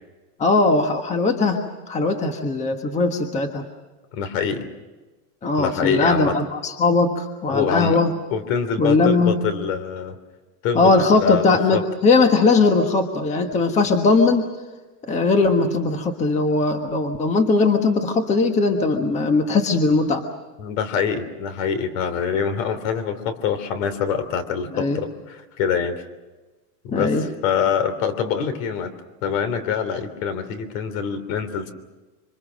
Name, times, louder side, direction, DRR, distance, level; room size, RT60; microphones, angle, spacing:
voice 1, 0.4-1.6 1.9-3.6 5.4-8.1 8.8-9.3 10.7-14.4 15.0-20.2 24.7-25.0 26.9-27.3, left 3 dB, 15° left, 6 dB, 1.3 m, -19 dB
voice 2, 4.1-4.7 5.6-6.4 7.5-8.0 8.3-10.2 10.6-11.8 20.6-26.0 26.8-28.9 29.2-31.7, left 7 dB, 55° left, 13 dB, 3.2 m, -25 dB
26.5 x 25.5 x 6.4 m, 1.2 s
supercardioid pair, 160°, 47 cm